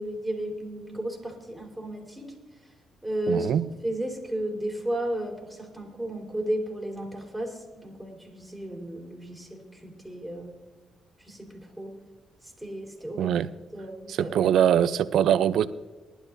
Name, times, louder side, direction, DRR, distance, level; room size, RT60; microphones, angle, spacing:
voice 1, 0.0-2.3 3.0-3.5 3.8-10.5 11.2-12.0 12.4-13.4 13.7-14.6, right 1 dB, ahead, 0 dB, 4.2 m, -34 dB
voice 2, 3.3-3.6 13.2-13.5 14.1-15.7, right 9 dB, 75° right, 14 dB, 0.6 m, -22 dB
21.0 x 12.5 x 2.7 m, 1.3 s
cardioid pair, 90°, 0 cm